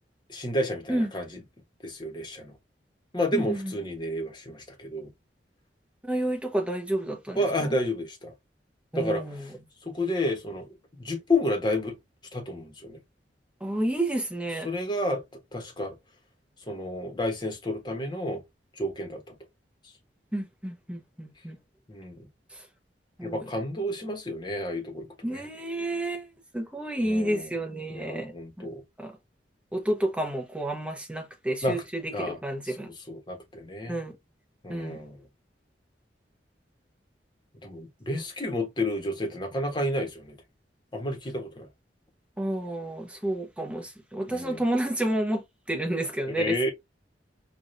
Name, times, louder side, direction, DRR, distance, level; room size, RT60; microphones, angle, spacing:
voice 1, 0.3-1.3 1.8-2.5 3.1-5.1 7.3-8.3 8.9-9.2 9.9-10.7 11.0-11.9 12.3-13.0 14.6-15.2 15.5-15.9 16.7-18.4 18.8-19.2 21.9-22.2 23.2-25.1 25.3-25.4 27.0-27.5 27.9-28.8 31.6-31.8 32.1-32.4 33.1-34.0 34.6-35.2 37.6-40.4 40.9-41.7 44.3-44.6 46.3-46.7, left 1 dB, 25° left, 1.2 m, -30 dB
voice 2, 3.3-3.7 6.1-7.4 8.9-9.5 13.6-14.7 20.3-21.6 23.2-23.5 25.2-26.3 26.5-28.7 29.0-29.1 29.7-32.9 33.9-34.1 34.7-35.0 42.4-46.7, right 1 dB, 5° right, 1.0 m, -30 dB
4.8 x 2.5 x 2.6 m
head